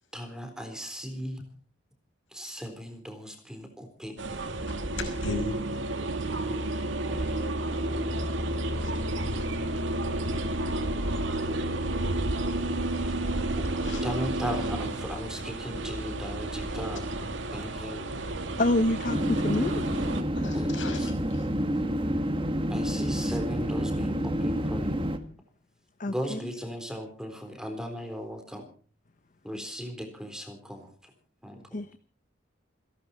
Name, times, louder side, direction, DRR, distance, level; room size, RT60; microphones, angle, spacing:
voice 1, 0.1-1.4 2.3-4.2 7.1-8.9 13.0-13.2 13.5-13.7 14.0-17.0 17.5-18.2 20.5-21.1 22.7-25.1 26.1-28.7 29.4-31.1 31.4-31.8, equal, 5° right, 3.8 m, -38 dB
sound 1, 4.2-20.2, right 1 dB, 75° right, 2.4 m, -31 dB
voice 2, 4.7-5.6 13.8-14.0 20.3-21.5, left 2 dB, 80° left, 5.8 m, -36 dB
voice 3, 18.6-19.8 26.0-26.4 31.7-32.0, left 1 dB, 45° left, 0.8 m, -27 dB
sound 2, 19.1-25.2, equal, 25° right, 1.8 m, -28 dB
29.0 x 11.5 x 4.4 m
head